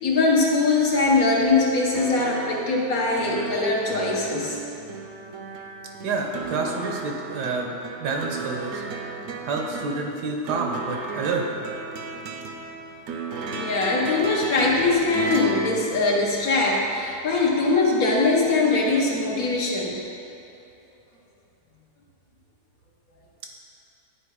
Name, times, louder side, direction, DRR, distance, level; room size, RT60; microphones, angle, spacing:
voice 1, 0.0-4.6 13.5-20.0, left 3 dB, 60° left, -2 dB, 1.4 m, -22 dB
sound 1, 1.9-16.9 18.1-18.2, right 4 dB, 60° right, 0.9 m, -35 dB
voice 2, 6.0-8.8 9.4-11.4, right 3 dB, 80° right, 1 dB, 1.5 m, -28 dB
9.9 x 4.5 x 4.7 m, 2.7 s
omnidirectional pair, 1.8 m